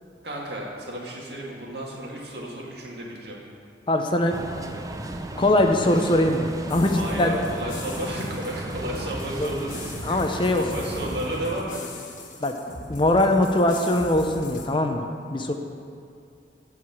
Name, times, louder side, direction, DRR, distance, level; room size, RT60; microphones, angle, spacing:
voice 1, 0.2-3.4 6.9-11.8, right 1 dB, 65° right, -3 dB, 2.1 m, -33 dB
voice 2, 3.9-4.3 5.4-7.4 10.1-10.6 12.4-12.5 12.9-15.0 15.3-15.5, left 1 dB, 30° left, 4 dB, 0.7 m, -21 dB
sound 1, 4.3-11.6, right 1 dB, 20° right, 0.5 m, -35 dB
sound 2, 6.7-14.7, left 2 dB, 50° left, 1.5 m, -40 dB
14.0 x 4.9 x 7.5 m, 2.4 s
head